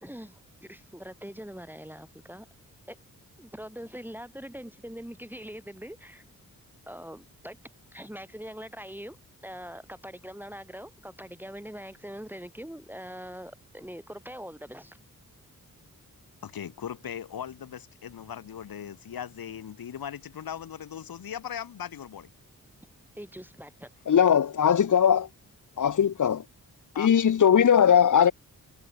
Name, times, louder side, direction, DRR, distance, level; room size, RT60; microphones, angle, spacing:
voice 1, 0.0-2.5 2.9-3.0 3.4-6.2 6.9-7.6 7.9-9.2 9.4-15.0 23.2-23.9, equal, 5° right, 2.7 m, -42 dB
voice 2, 16.4-22.3 26.9-27.1, left 9 dB, 80° left, 2.3 m, -38 dB
voice 3, 24.1-25.3 25.8-26.4 27.0-28.3, left 8 dB, 60° left, 1.1 m, -20 dB
cardioid pair, 75°, 35 cm